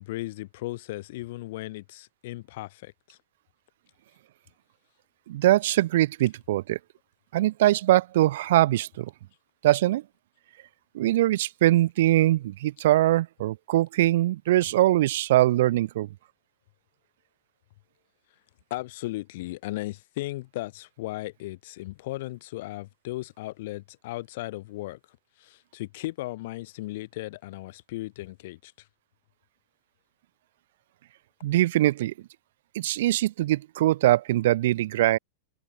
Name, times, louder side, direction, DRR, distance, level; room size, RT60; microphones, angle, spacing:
voice 1, 0.0-3.2 18.7-25.0 25.4-28.7, left 18 dB, 50° left, 0.7 m, -36 dB
voice 2, 5.3-6.8 7.3-9.1 9.6-10.0 10.9-16.1 31.4-32.1 32.7-35.2, right 15 dB, 55° right, 0.6 m, -22 dB
figure-of-eight pair, 90°, 0 cm